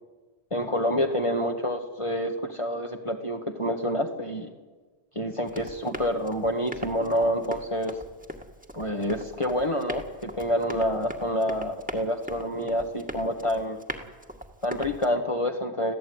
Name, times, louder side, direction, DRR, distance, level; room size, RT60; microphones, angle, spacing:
voice 1, 0.5-4.5 5.1-7.9 8.7-13.8 14.6-16.0, equal, 30° left, 2 dB, 1.6 m, -28 dB
Run, 5.5-15.1, equal, 10° right, 1.9 m, -40 dB
26.0 x 16.0 x 9.6 m, 1.3 s
omnidirectional pair, 1.1 m